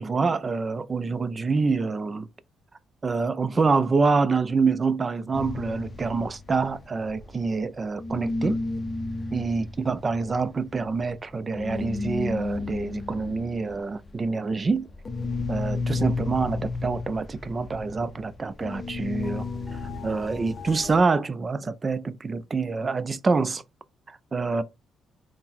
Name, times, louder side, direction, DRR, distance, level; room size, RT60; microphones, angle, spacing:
voice 1, 0.0-2.3 3.0-8.6 9.3-14.9 15.5-19.5 19.7-23.6 24.3-24.6, right 4 dB, 30° right, 0.4 m, -26 dB
sound 1, 5.3-7.7 8.0-21.0, left 3 dB, 30° left, 0.5 m, -33 dB
3.7 x 2.1 x 4.4 m
cardioid pair, 90°, 0 cm